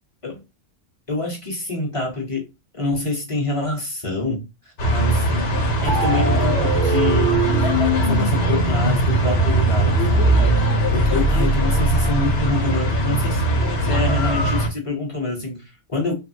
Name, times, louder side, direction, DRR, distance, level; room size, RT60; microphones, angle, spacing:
voice 1, 1.1-2.5 2.7-4.4 4.9-5.5 5.8-7.5 8.0-10.6 10.9-13.4 13.8-16.1, left 2 dB, 30° left, 0.8 m, -26 dB
sound 1, 4.8-14.7, right 1 dB, 65° left, 1.0 m, -21 dB
sound 2, 5.9-12.5, right 2 dB, 45° right, 0.6 m, -22 dB
3.0 x 2.5 x 2.7 m
omnidirectional pair, 1.2 m